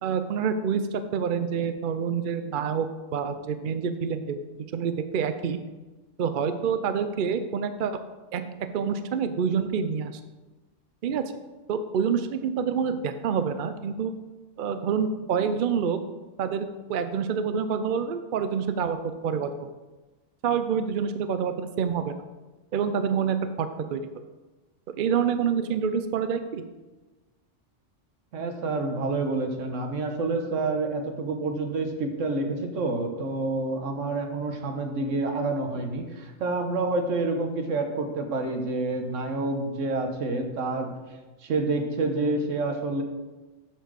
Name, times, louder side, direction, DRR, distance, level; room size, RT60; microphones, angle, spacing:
voice 1, 0.0-2.9 3.1-4.4 4.7-5.6 6.2-8.0 8.3-8.4 8.7-10.2 11.0-11.2 11.7-14.1 14.6-16.0 16.4-19.7 20.4-22.2 22.7-24.0 24.9-26.6, right 7 dB, 55° right, 9 dB, 0.6 m, -27 dB
voice 2, 28.3-41.0 41.4-43.0, right 3 dB, 80° right, 5 dB, 1.4 m, -28 dB
8.1 x 4.5 x 6.2 m, 1.2 s
omnidirectional pair, 1.3 m